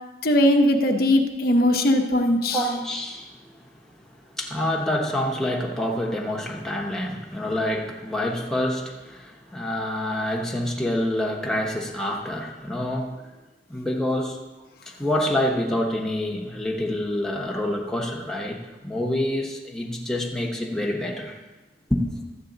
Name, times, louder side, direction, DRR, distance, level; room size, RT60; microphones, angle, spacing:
voice 1, 0.2-2.6, left 1 dB, 55° left, 3 dB, 0.8 m, -19 dB
voice 2, 2.5-3.5 4.4-13.3 13.7-14.4 14.9-21.4 21.9-22.3, left 1 dB, 5° left, -2 dB, 0.9 m, -27 dB
12.5 x 8.0 x 3.9 m, 1.2 s
head